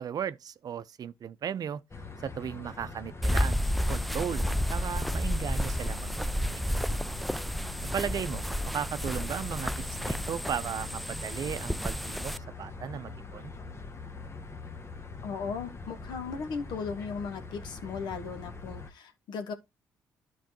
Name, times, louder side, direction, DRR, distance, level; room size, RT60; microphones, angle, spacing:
voice 1, 0.0-1.8 2.2-4.4 4.7-6.1 6.5-6.6 7.9-9.7 10.0-12.3 12.6-13.5, right 8 dB, 55° right, 0.6 m, -36 dB
sound 1, 1.9-18.9, left 4 dB, 35° left, 1.1 m, -43 dB
sound 2, 3.2-12.4, equal, ahead, 0.4 m, -31 dB
voice 2, 15.2-19.5, left 5 dB, 75° left, 1.2 m, -37 dB
12.0 x 4.6 x 3.0 m
hypercardioid pair, 50°, 8 cm